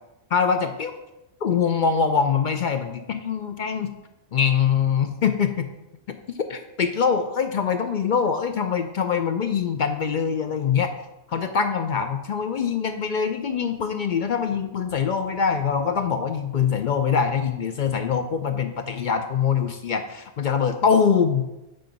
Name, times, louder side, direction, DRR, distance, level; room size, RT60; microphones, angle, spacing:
voice 1, 0.3-1.0 1.4-3.9 4.3-5.7 6.5-10.9 11.3-21.5, left 6 dB, 60° left, 7 dB, 0.5 m, -23 dB
8.8 x 3.9 x 5.2 m, 0.94 s
omnidirectional pair, 1.3 m